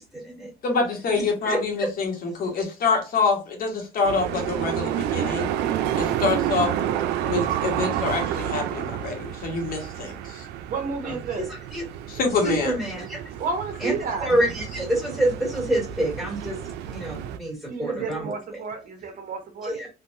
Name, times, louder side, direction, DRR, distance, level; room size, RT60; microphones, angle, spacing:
voice 1, 0.0-0.5 1.5-1.6 11.0-11.8 12.4-13.2 13.8-13.9 14.2-16.6 16.9-18.3 19.6-19.9, right 1 dB, ahead, 1.9 m, -27 dB
voice 2, 0.6-5.5 6.0-6.7 7.2-10.4 12.1-12.7, left 4 dB, 60° left, 1.4 m, -26 dB
sound 1, 4.0-17.4, right 10 dB, 90° right, 0.4 m, -30 dB
voice 3, 10.7-11.4 13.4-14.3 17.7-19.7, right 4 dB, 50° right, 1.0 m, -31 dB
3.5 x 2.6 x 2.6 m
cardioid pair, 110°, 17 cm